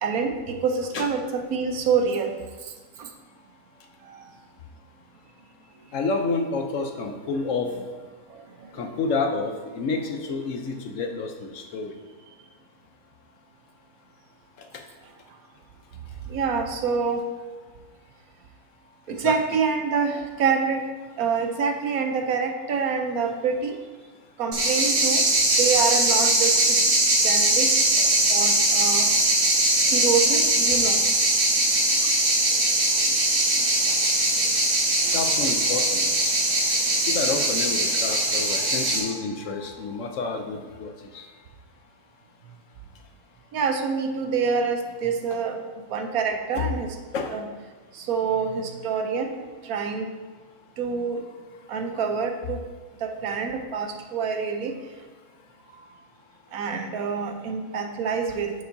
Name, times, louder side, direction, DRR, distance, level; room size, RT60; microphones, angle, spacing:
voice 1, 0.0-2.4 3.0-3.1 4.1-4.2 8.3-8.7 16.3-17.2 19.1-20.8 21.2-23.8 24.4-25.3 25.6-26.8 27.2-27.7 28.3-29.1 29.9-31.0 35.0-35.1 43.5-45.6 45.9-47.0 47.3-47.5 47.9-50.1 50.8-51.2 51.7-52.6 53.0-54.7 56.5-58.5, right 5 dB, 70° right, 5 dB, 1.1 m, -26 dB
voice 2, 5.9-7.7 8.8-11.9 19.1-19.3 35.1-36.3 37.1-41.3 46.5-46.7 47.1-47.4, left 4 dB, 65° left, 4 dB, 0.9 m, -29 dB
sound 1, 24.5-39.0, right 1 dB, 55° right, 1.6 m, -21 dB
9.0 x 7.0 x 2.7 m, 1.3 s
omnidirectional pair, 1.6 m